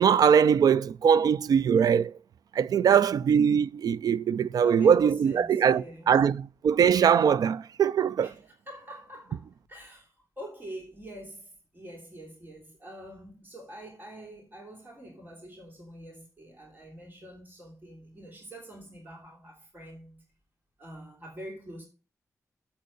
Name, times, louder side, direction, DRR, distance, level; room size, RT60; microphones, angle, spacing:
voice 1, 0.0-2.1 2.6-8.3, right 7 dB, 90° right, 0.4 m, -22 dB
voice 2, 2.8-3.2 4.6-6.2 8.2-20.2 20.8-21.9, right 1 dB, 30° right, 3.1 m, -46 dB
7.5 x 6.6 x 6.4 m
wide cardioid pair, 135°, 6 cm